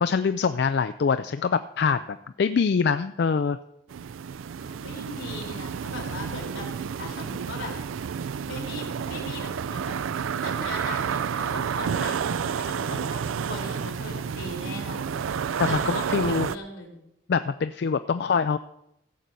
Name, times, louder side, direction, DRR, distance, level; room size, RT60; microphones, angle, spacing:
voice 1, 0.0-3.6 15.6-16.5 17.3-18.6, left 5 dB, 55° left, 11 dB, 0.3 m, -24 dB
sound 1, 3.9-16.6, right 7 dB, 90° right, 0.4 m, -30 dB
voice 2, 4.6-7.7 8.5-10.0 10.4-15.3 15.6-17.0, left 2 dB, 80° left, -1 dB, 3.7 m, -39 dB
15.5 x 5.3 x 7.5 m, 0.80 s
head